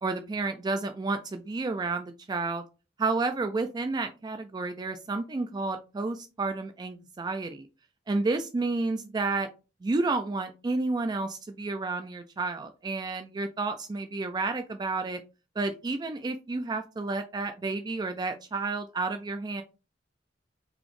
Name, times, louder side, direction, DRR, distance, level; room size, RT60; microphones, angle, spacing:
voice 1, 0.0-2.6 3.0-7.7 8.1-9.5 9.8-15.2 15.6-19.6, right 3 dB, 25° right, 8 dB, 0.3 m, -31 dB
4.0 x 2.9 x 3.0 m, 0.31 s
head